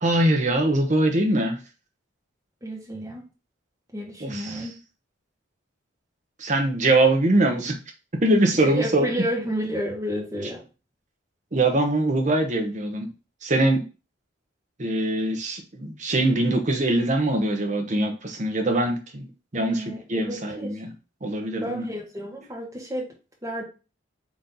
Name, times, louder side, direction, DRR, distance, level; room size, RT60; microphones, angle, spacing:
voice 1, 0.0-1.6 4.2-4.6 6.4-7.7 8.2-9.1 11.5-13.1 13.4-13.8 14.8-19.3 19.5-20.9 21.2-21.8, right 1 dB, 40° right, 4 dB, 0.9 m, -22 dB
voice 2, 2.6-3.3 3.9-4.7 8.6-10.6 19.5-20.8 21.6-23.1 23.4-23.6, equal, 15° right, -3 dB, 1.4 m, -31 dB
4.0 x 3.1 x 3.8 m, 0.31 s
head